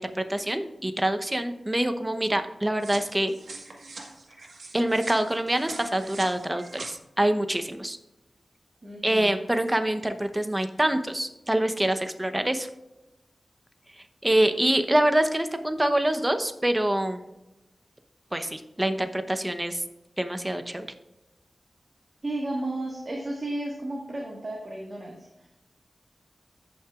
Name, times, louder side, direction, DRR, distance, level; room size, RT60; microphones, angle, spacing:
voice 1, 0.0-3.3 4.7-8.0 9.0-12.7 14.2-17.2 18.3-19.8 20.2-20.9, right 1 dB, 15° right, 8 dB, 0.8 m, -25 dB
sound 1, 2.8-6.9, right 3 dB, 90° right, 1.5 m, -42 dB
voice 2, 8.8-9.4 22.2-25.5, right 1 dB, 40° right, -2 dB, 1.6 m, -33 dB
14.5 x 5.8 x 2.4 m, 0.96 s
wide cardioid pair, 70°, 0 cm